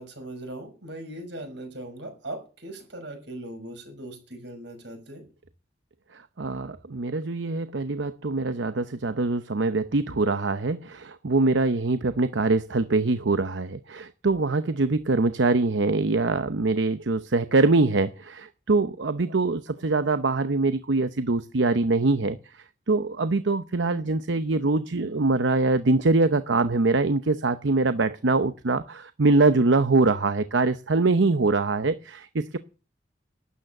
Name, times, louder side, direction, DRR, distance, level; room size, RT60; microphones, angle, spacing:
voice 1, 0.0-5.3, right 1 dB, 70° right, 5.9 m, -39 dB
voice 2, 6.1-32.6, right 3 dB, 90° right, 0.8 m, -23 dB
12.5 x 9.3 x 8.9 m
head